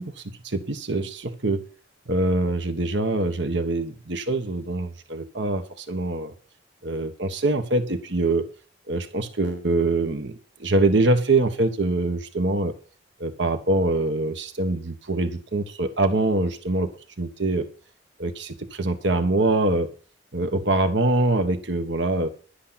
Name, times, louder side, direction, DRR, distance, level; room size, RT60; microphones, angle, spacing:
voice 1, 0.0-1.7 2.1-6.3 6.8-8.5 8.9-12.7 13.2-16.9 17.2-17.7 18.2-19.9 20.3-22.3, right 2 dB, 70° right, 8 dB, 1.4 m, -24 dB
12.0 x 8.4 x 5.8 m, 0.37 s
head